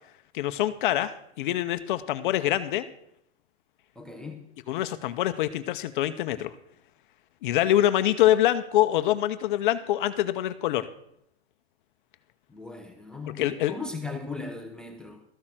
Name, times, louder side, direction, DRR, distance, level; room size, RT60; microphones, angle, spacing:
voice 1, 0.3-2.9 4.7-6.5 7.4-10.9 13.4-13.7, left 13 dB, 45° left, 11 dB, 0.7 m, -25 dB
voice 2, 4.0-4.5 12.5-15.2, left 3 dB, ahead, 5 dB, 0.4 m, -38 dB
13.5 x 6.6 x 7.4 m, 0.74 s
supercardioid pair, 160°, 34 cm